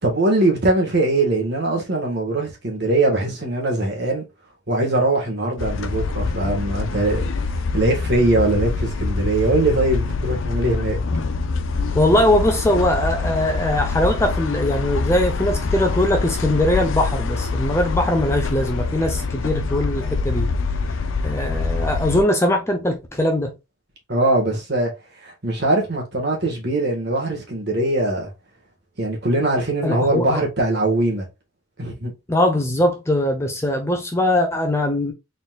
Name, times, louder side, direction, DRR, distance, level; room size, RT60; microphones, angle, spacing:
voice 1, 0.0-4.2 4.7-7.2 7.7-11.0 24.1-24.9 25.2-28.3 29.0-31.2 31.8-32.1, right 2 dB, 50° right, 1.6 m, -21 dB
sound 1, 5.6-22.2, left 4 dB, 65° left, 0.5 m, -25 dB
voice 2, 11.9-20.5 21.2-23.6 29.8-30.4 32.3-35.1, left 1 dB, 15° left, 0.7 m, -21 dB
4.2 x 4.0 x 2.4 m
head